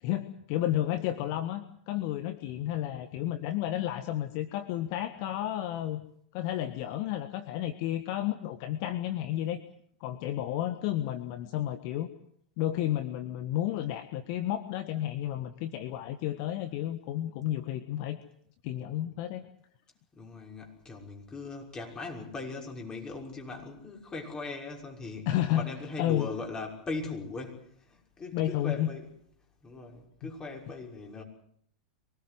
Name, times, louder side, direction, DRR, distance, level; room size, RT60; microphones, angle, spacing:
voice 1, 0.0-6.1 6.3-9.6 10.0-12.1 12.6-18.2 18.6-19.4 25.2-25.7 26.0-26.3 28.3-28.9 30.2-30.3, left 12 dB, 50° left, 1.6 m, -32 dB
voice 2, 20.1-29.1 29.6-31.2, left 3 dB, 20° left, 6.1 m, -39 dB
24.0 x 18.5 x 8.0 m
figure-of-eight pair, 95°, 4 cm